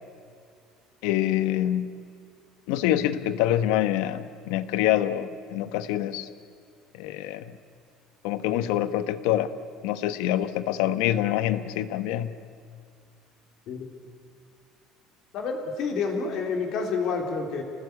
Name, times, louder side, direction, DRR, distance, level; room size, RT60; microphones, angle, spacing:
voice 1, 1.0-2.0 2.7-6.3 7.0-7.6 8.2-9.5 9.8-12.3, left 12 dB, 90° left, 12 dB, 1.2 m, -26 dB
voice 2, 15.3-17.6, left 5 dB, 50° left, 2 dB, 3.8 m, -28 dB
28.5 x 19.5 x 8.4 m, 2.3 s
cardioid pair, 175°, 0 cm